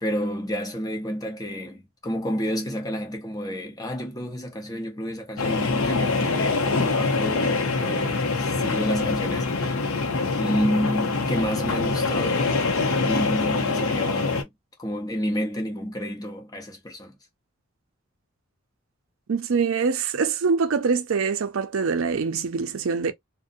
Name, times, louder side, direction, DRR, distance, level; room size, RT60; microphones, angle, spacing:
voice 1, 0.0-9.8 10.4-12.5 13.0-14.5 14.8-17.2, equal, 20° left, 0.6 m, -30 dB
sound 1, 5.4-14.4, left 3 dB, 80° left, 0.6 m, -24 dB
voice 2, 19.3-23.1, right 5 dB, 70° right, 0.5 m, -24 dB
2.5 x 2.1 x 2.5 m
head